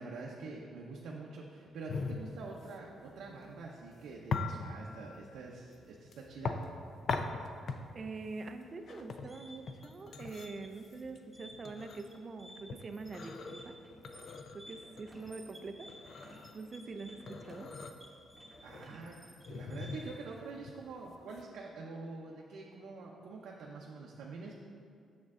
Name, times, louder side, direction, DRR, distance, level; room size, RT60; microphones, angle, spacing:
voice 1, 0.0-6.6 18.6-19.2 19.5-24.5, right 3 dB, 70° right, -2 dB, 0.6 m, -46 dB
sound 1, 1.9-21.4, left 4 dB, 45° left, 0.4 m, -41 dB
voice 2, 7.7-13.8 14.5-17.7, right 3 dB, 30° right, 7 dB, 0.4 m, -45 dB
sound 2, 9.2-20.3, equal, ahead, 1.1 m, -54 dB
6.9 x 6.5 x 3.6 m, 2.4 s
cardioid pair, 170°, 0 cm